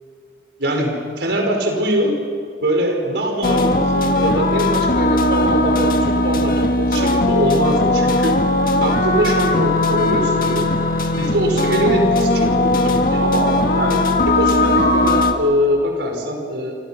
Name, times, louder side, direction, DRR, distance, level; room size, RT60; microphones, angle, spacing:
voice 1, 0.6-2.2 2.6-8.4 8.8-10.7 11.2-16.8, right 1 dB, 75° right, 2 dB, 5.2 m, -22 dB
sound 1, 3.4-15.3, left 2 dB, 50° left, 1.7 m, -18 dB
29.0 x 24.5 x 5.9 m, 2.4 s
head